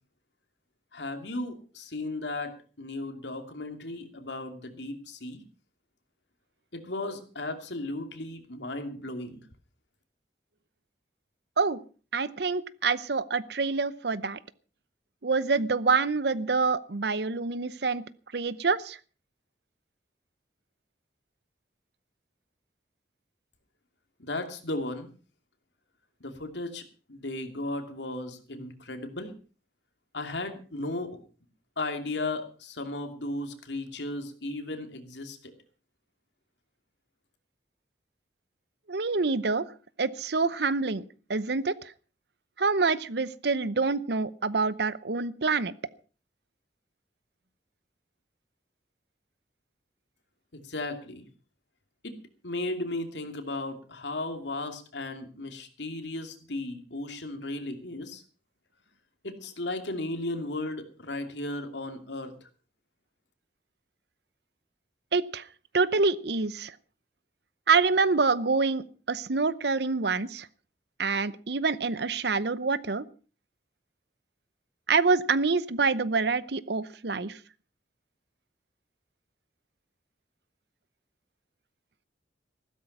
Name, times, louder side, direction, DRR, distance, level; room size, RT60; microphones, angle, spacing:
voice 1, 0.9-5.4 6.7-9.4 24.2-25.1 26.2-26.8 27.1-29.3 30.1-31.2 31.8-35.5 50.5-51.2 52.0-52.1 52.4-58.2 59.2-62.3, left 2 dB, 80° left, 6 dB, 2.7 m, -35 dB
voice 2, 12.1-14.4 15.2-18.0 18.3-19.0 38.9-39.6 40.0-41.0 41.3-41.7 42.6-45.7 65.1-65.4 65.7-66.7 67.7-70.5 71.0-73.0 74.9-77.3, right 4 dB, 65° right, 17 dB, 0.8 m, -26 dB
15.0 x 13.0 x 5.4 m, 0.37 s
head